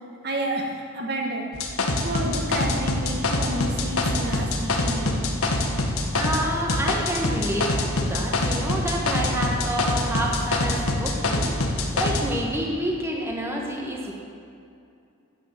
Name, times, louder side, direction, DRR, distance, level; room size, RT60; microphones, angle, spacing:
voice 1, 0.2-1.6 2.0-5.3, right 1 dB, 50° right, 1 dB, 1.3 m, -30 dB
sound 1, 1.5-6.4 6.7-12.2, left 2 dB, 85° left, 1.4 m, -24 dB
voice 2, 6.1-14.1, right 1 dB, 10° right, -1 dB, 1.3 m, -29 dB
9.9 x 8.6 x 7.5 m, 2.5 s
head